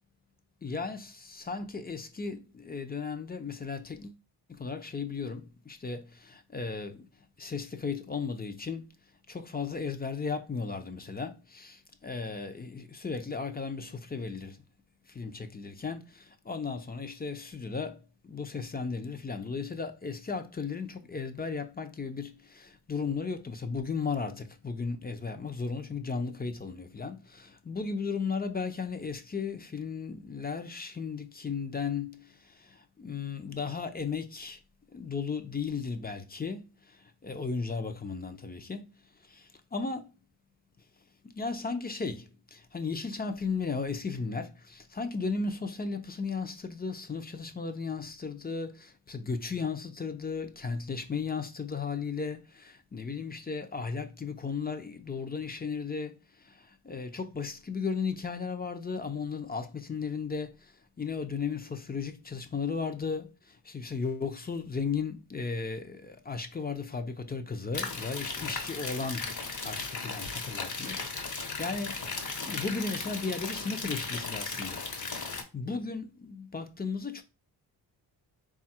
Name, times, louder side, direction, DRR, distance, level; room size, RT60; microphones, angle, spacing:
voice 1, 0.6-4.1 4.6-7.0 7.4-8.8 9.3-11.8 12.0-14.6 15.1-18.0 18.2-32.2 33.0-34.6 34.9-36.6 37.2-38.9 39.7-40.1 41.3-42.2 42.5-56.1 56.8-60.5 61.0-63.3 63.7-69.3 69.6-72.0 72.4-74.8 75.1-77.2, left 5 dB, 20° left, 0.6 m, -35 dB
sound 1, 67.7-75.4, left 4 dB, 45° left, 1.1 m, -36 dB
3.7 x 2.4 x 4.3 m
cardioid pair, 85°, 41 cm